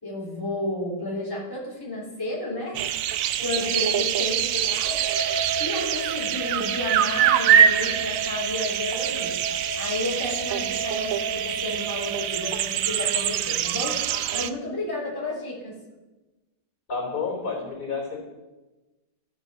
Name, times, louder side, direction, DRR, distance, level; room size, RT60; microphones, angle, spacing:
voice 1, 0.0-2.8 3.4-5.0 5.6-9.3 9.8-15.7, left 2 dB, 10° left, -5 dB, 3.3 m, -32 dB
sound 1, 2.7-14.5, right 10 dB, 80° right, 0.7 m, -24 dB
sound 2, 4.8-12.5, right 4 dB, 25° right, 1.5 m, -34 dB
voice 2, 16.9-18.2, left 4 dB, 55° left, -1 dB, 4.2 m, -30 dB
12.5 x 9.0 x 5.5 m, 1.1 s
omnidirectional pair, 2.0 m